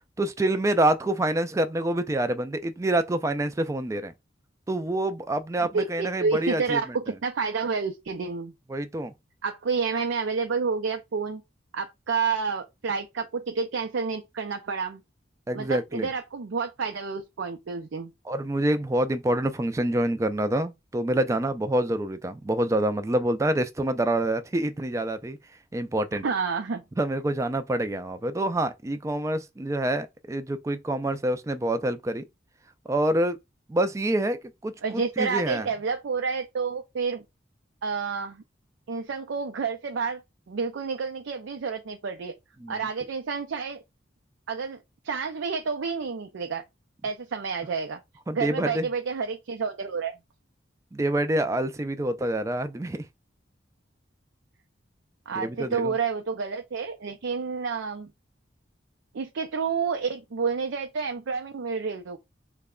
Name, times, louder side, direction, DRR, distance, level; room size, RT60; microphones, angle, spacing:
voice 1, 0.2-4.1 4.7-6.8 8.7-9.1 15.5-16.1 18.3-25.4 25.7-26.2 27.0-32.2 32.9-33.4 33.7-34.4 34.6-35.7 42.6-42.9 48.3-48.9 50.9-53.0 55.4-55.9, right 1 dB, 15° right, 0.3 m, -26 dB
voice 2, 5.7-8.5 9.4-11.4 11.7-15.0 15.5-18.1 26.2-26.8 34.8-37.2 37.8-38.4 38.9-40.2 40.5-42.4 42.7-43.8 44.5-46.6 47.0-48.0 48.3-50.2 55.3-58.1 59.1-62.2, right 5 dB, 85° right, 0.5 m, -29 dB
3.2 x 2.1 x 3.6 m
head